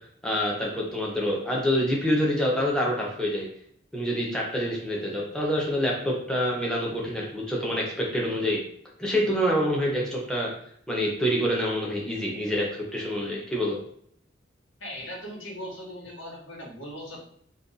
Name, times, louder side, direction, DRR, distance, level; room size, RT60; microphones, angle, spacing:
voice 1, 0.2-3.5 3.9-8.6 9.0-10.5 10.9-13.8, equal, 5° left, -3 dB, 0.6 m, -26 dB
voice 2, 14.8-17.2, equal, 75° left, -3 dB, 1.1 m, -39 dB
2.5 x 2.3 x 3.9 m, 0.66 s
head